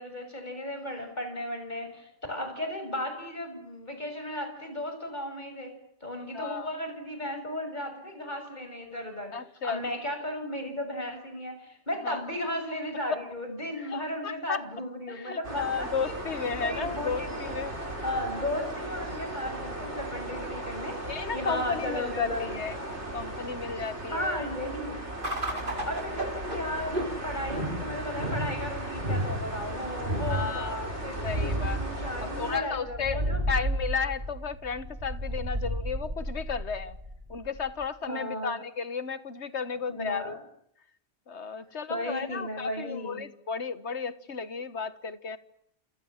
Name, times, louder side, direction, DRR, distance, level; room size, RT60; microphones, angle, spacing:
voice 1, 0.0-5.7 6.0-9.3 9.6-17.7 18.0-22.6 24.1-25.0 25.9-33.5 38.1-38.5 39.9-40.3 41.9-43.2, left 1 dB, 40° left, 7.2 m, -35 dB
voice 2, 6.3-6.7 9.3-9.8 12.0-12.2 13.1-13.2 13.8-14.6 15.1-17.7 19.9-20.0 21.1-22.7 23.1-24.4 25.4-25.8 30.3-30.9 31.2-31.8 32.2-37.0 37.3-40.4 41.3-45.4, left 6 dB, 75° left, 1.7 m, -34 dB
sound 1, 15.4-32.6, right 1 dB, 85° right, 5.8 m, -37 dB
sound 2, 25.2-37.8, right 1 dB, 50° right, 5.1 m, -33 dB
28.5 x 27.5 x 7.4 m
omnidirectional pair, 1.1 m